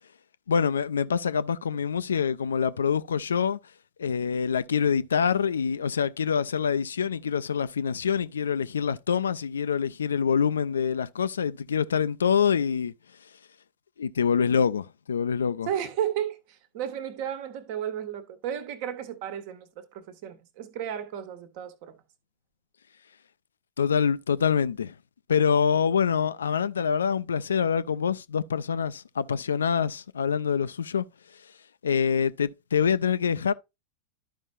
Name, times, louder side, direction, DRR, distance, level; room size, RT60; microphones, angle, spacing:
voice 1, 0.5-3.6 4.0-12.9 14.0-15.7 23.8-24.9 25.3-31.0 31.8-33.5, left 7 dB, 70° left, 0.4 m, -25 dB
voice 2, 15.7-21.9, right 10 dB, 45° right, 1.3 m, -33 dB
12.5 x 5.3 x 2.5 m
figure-of-eight pair, 90°, 0 cm